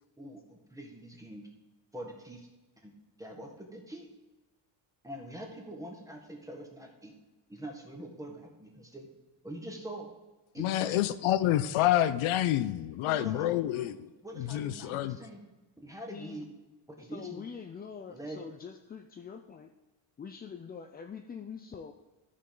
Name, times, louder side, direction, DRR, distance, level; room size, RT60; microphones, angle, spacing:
voice 1, 0.2-1.5 1.9-2.5 2.8-2.9 3.2-4.1 5.0-7.1 7.5-9.1 9.4-10.1 10.5-11.0 13.1-13.9 14.2-15.4 15.8-16.4 17.0-17.4 18.1-18.4, right 1 dB, 5° right, 1.6 m, -44 dB
voice 2, 10.6-14.0 14.4-15.2, left 13 dB, 80° left, 0.6 m, -28 dB
voice 3, 16.1-16.4 17.0-19.7 20.2-21.9, left 6 dB, 20° left, 0.3 m, -44 dB
13.5 x 5.6 x 3.9 m
cardioid pair, 125°, 49 cm